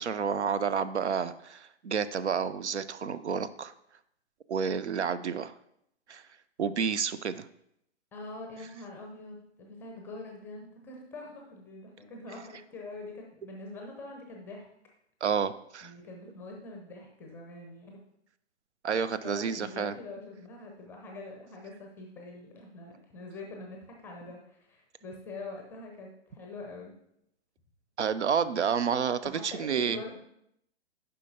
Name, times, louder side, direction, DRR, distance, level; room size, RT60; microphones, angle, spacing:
voice 1, 0.0-3.7 4.5-5.5 6.1-6.2 6.6-7.5 15.2-15.9 18.8-19.9 28.0-30.0, right 6 dB, 75° right, 14 dB, 0.5 m, -30 dB
voice 2, 8.1-14.7 15.8-18.0 19.2-26.9 29.2-30.2, left 2 dB, 5° left, 1 dB, 0.6 m, -44 dB
9.8 x 5.6 x 2.8 m, 0.75 s
figure-of-eight pair, 120°, 35 cm